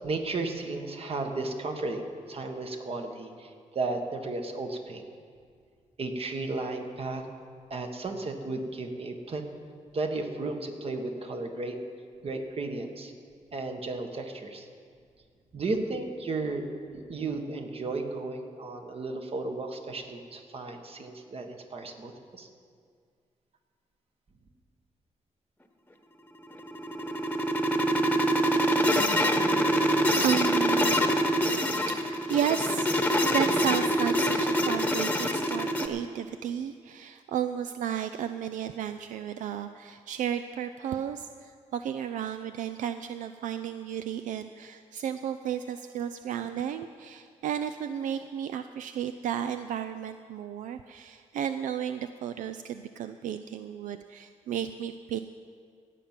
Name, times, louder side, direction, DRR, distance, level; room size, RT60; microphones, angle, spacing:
voice 1, 0.0-5.0 6.0-7.2 7.7-9.4 9.9-11.8 12.2-13.1 13.5-14.7 15.5-16.7 16.9-22.5, right 3 dB, 50° right, 4 dB, 1.6 m, -34 dB
sound 1, 26.4-35.9, equal, 10° left, 1.1 m, -25 dB
voice 2, 29.7-31.0 31.9-55.2, right 9 dB, 85° right, 9 dB, 0.4 m, -33 dB
16.0 x 5.9 x 9.1 m, 2.1 s
cardioid pair, 90°, 13 cm